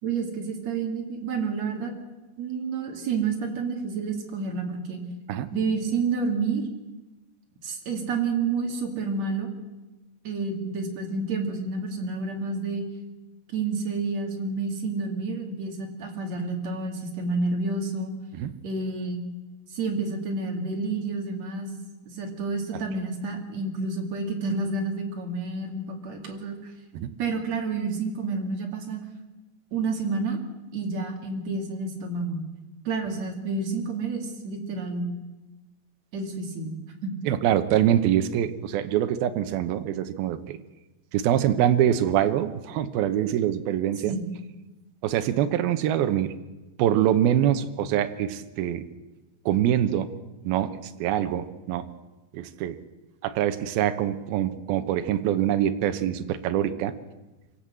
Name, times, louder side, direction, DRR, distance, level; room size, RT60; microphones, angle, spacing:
voice 1, 0.0-1.9 2.4-5.0 5.5-6.6 7.6-9.5 10.2-12.8 13.5-18.1 18.6-19.2 19.7-21.7 22.1-26.7 27.2-29.0 29.7-30.4 30.7-32.4 32.8-35.1 36.1-36.7 37.0-37.1 44.0-44.3, right 4 dB, 40° right, 2 dB, 3.1 m, -29 dB
voice 2, 37.3-40.6 41.1-44.2 45.0-46.3 46.8-48.8 49.5-50.1 50.4-51.8 52.3-52.8 53.2-56.9, right 11 dB, 75° right, 9 dB, 2.4 m, -24 dB
26.0 x 17.0 x 7.6 m, 1.1 s
omnidirectional pair, 5.4 m